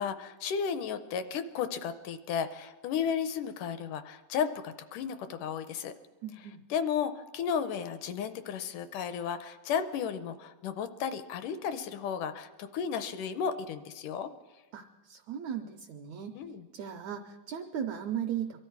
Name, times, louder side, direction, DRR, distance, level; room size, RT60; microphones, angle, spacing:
voice 1, 0.0-5.9 6.7-14.3 16.4-16.7, left 7 dB, 80° left, 10 dB, 2.0 m, -33 dB
voice 2, 6.2-6.6 14.7-16.4 16.7-18.6, right 9 dB, 85° right, 6 dB, 1.6 m, -37 dB
23.5 x 13.5 x 4.6 m, 1.2 s
omnidirectional pair, 4.1 m